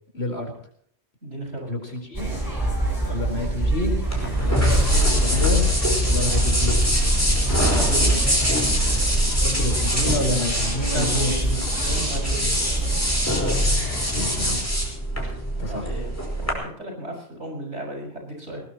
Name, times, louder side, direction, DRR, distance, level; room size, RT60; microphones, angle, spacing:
voice 1, 0.1-0.5 1.7-2.3 3.0-4.0 4.4-5.7 6.0-6.8 9.4-11.6 11.8-12.1 14.1-14.7 15.6-15.9, left 1 dB, 65° left, 3 dB, 4.8 m, -29 dB
voice 2, 1.2-1.7 7.5-8.2 10.9-11.4 12.0-12.6 15.5-18.6, right 1 dB, 90° right, 1 dB, 6.7 m, -33 dB
sound 1, 2.1-14.6, right 1 dB, 20° right, 6.3 m, -25 dB
sound 2, 4.1-16.5, equal, 15° left, 4.8 m, -23 dB
20.0 x 19.5 x 3.1 m, 0.62 s
omnidirectional pair, 1.2 m